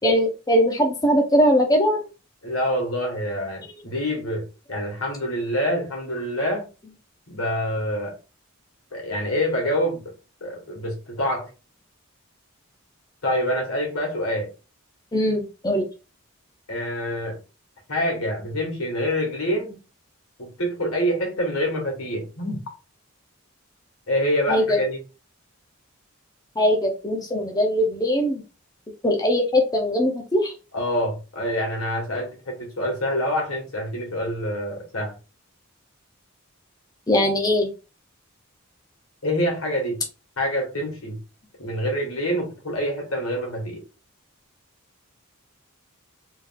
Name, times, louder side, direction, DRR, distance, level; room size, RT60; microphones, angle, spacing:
voice 1, 0.0-2.0 15.1-15.8 24.5-24.8 26.6-28.4 29.0-30.5 37.1-37.7, equal, 15° left, 0.6 m, -20 dB
voice 2, 2.4-6.7 7.3-8.1 8.9-10.1 10.4-11.5 13.2-14.5 16.7-17.4 17.9-19.8 20.4-22.6 24.1-25.0 30.7-35.2 39.2-40.0 40.4-41.2 41.6-43.8, equal, 80° left, 1.6 m, -26 dB
3.5 x 2.6 x 3.6 m
head